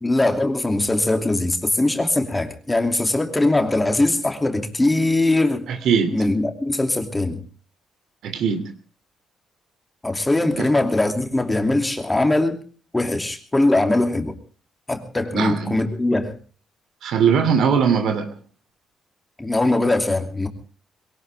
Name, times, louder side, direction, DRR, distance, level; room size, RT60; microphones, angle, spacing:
voice 1, 0.0-5.7 6.1-7.4 10.0-12.6 12.9-14.3 14.9-16.3 19.4-20.5, left 2 dB, 15° left, 6 dB, 2.7 m, -21 dB
voice 2, 5.7-6.1 8.2-8.6 10.6-10.7 15.3-15.7 17.0-18.3, right 6 dB, 75° right, 9 dB, 2.8 m, -20 dB
22.0 x 18.0 x 3.5 m, 0.38 s
cardioid pair, 90°, 0 cm